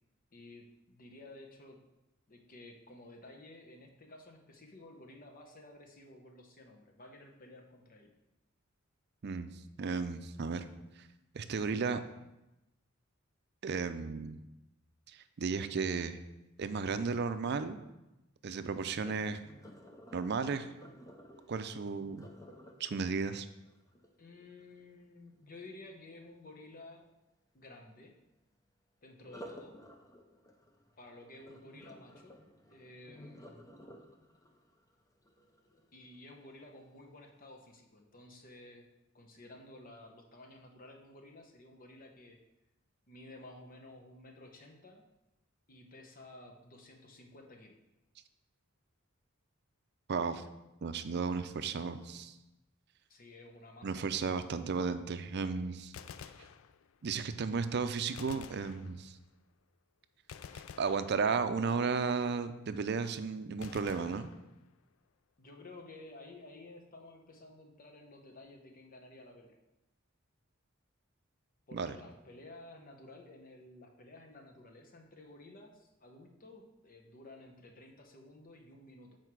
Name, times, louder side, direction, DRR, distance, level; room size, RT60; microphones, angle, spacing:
voice 1, 0.3-1.8 2.3-8.1 24.2-27.1 27.5-28.1 29.0-29.8 31.0-32.4 32.7-33.6 35.9-38.9 39.1-42.4 43.1-45.0 45.7-47.8 53.1-54.7 65.4-69.6 71.7-79.2, left 2 dB, 45° left, 2 dB, 1.0 m, -53 dB
voice 2, 9.8-10.7 11.3-12.0 13.6-14.4 15.1-16.2 16.6-17.8 18.4-19.4 20.1-20.7 21.5-22.3 22.8-23.5 50.1-50.4 50.8-52.3 53.8-55.9 57.0-59.2 60.8-64.3 71.7-71.9, right 5 dB, 55° right, 11 dB, 0.5 m, -34 dB
Sink (filling or washing), 18.8-24.8 29.2-36.2 36.7-37.1 37.5-37.6, equal, 15° left, 0.6 m, -54 dB
Gunshot gunfire, 55.9-57.2 58.2-59.4 60.3-61.7 63.6-65.0, left 7 dB, 85° left, 0.4 m, -50 dB
7.8 x 4.5 x 4.7 m, 0.97 s
head